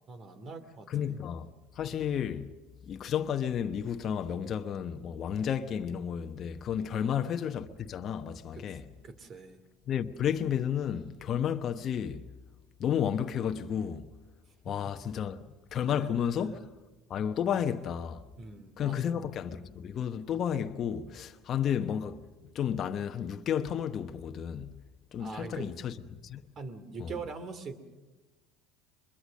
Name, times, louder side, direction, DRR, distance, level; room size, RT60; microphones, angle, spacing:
voice 1, 0.1-1.2 6.9-7.3 8.5-8.7 9.0-9.6 14.7-14.8 15.9-16.1 18.4-19.2 25.2-25.7 26.6-27.8, right 4 dB, 40° right, 2.6 m, -43 dB
voice 2, 0.9-1.5 1.8-2.6 2.9-8.9 9.9-12.3 12.8-14.1 14.6-15.4 15.7-16.7 17.1-18.2 18.8-22.2 22.5-24.8 25.1-26.0 26.2-26.4 27.0-27.1, left 8 dB, 45° left, 1.0 m, -32 dB
23.5 x 22.0 x 6.5 m
hypercardioid pair, 80°, 0 cm